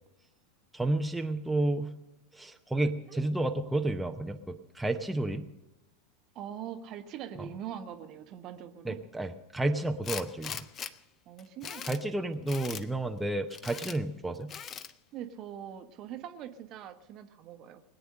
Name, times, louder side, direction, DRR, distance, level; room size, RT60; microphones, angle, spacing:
voice 1, 0.7-1.9 2.3-5.5 8.8-10.6 11.8-14.5, right 2 dB, 5° right, 5 dB, 0.7 m, -31 dB
voice 2, 6.3-9.0 11.3-12.1 15.1-17.8, right 9 dB, 40° right, 10 dB, 1.1 m, -42 dB
Tools, 10.0-10.9 11.4-12.0 12.5-12.8 13.5-14.0 14.5-14.9, left 8 dB, 30° left, 0.7 m, -40 dB
21.0 x 9.3 x 6.5 m, 0.92 s
figure-of-eight pair, 85°, 0 cm